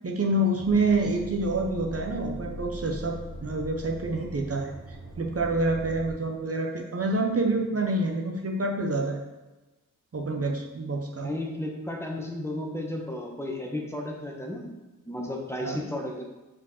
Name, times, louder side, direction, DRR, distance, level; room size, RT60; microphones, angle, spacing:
voice 1, 0.0-9.2 10.1-11.3 15.6-15.8, right 2 dB, 45° right, 1 dB, 0.7 m, -27 dB
sound 1, 0.6-6.1, equal, 70° right, 1.6 m, -41 dB
voice 2, 11.2-14.7 15.1-16.2, left 1 dB, 10° left, -1 dB, 1.2 m, -33 dB
4.8 x 4.8 x 4.2 m, 1.1 s
wide cardioid pair, 55°, 33 cm